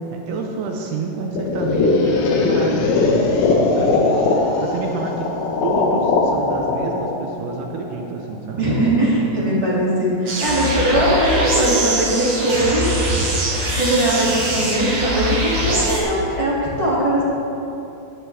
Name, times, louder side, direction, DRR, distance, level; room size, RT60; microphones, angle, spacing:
voice 1, 0.1-4.0 4.4-5.3 5.6-9.1, right 4 dB, 75° right, 2 dB, 2.5 m, -29 dB
sound 1, 1.4-8.2, left 3 dB, 70° left, 2.7 m, -19 dB
voice 2, 8.6-13.0 13.8-17.2, right 1 dB, 20° right, -8 dB, 0.8 m, -20 dB
sound 2, 10.3-16.0, right 1 dB, 50° right, 2.6 m, -22 dB
15.0 x 9.7 x 3.4 m, 2.8 s
omnidirectional pair, 5.0 m